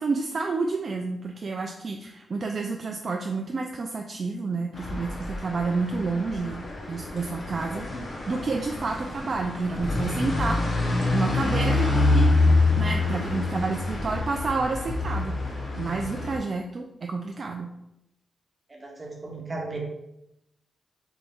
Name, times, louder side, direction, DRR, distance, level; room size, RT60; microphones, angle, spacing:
voice 1, 0.0-10.6 11.1-12.3 12.7-15.3 15.8-17.7, right 3 dB, 55° right, 2 dB, 0.3 m, -30 dB
sound 1, 4.7-16.4, left 2 dB, 50° left, 0.8 m, -26 dB
voice 2, 18.7-19.8, right 2 dB, 30° right, -1 dB, 1.0 m, -36 dB
4.0 x 2.3 x 3.4 m, 0.84 s
cardioid pair, 65°, 0 cm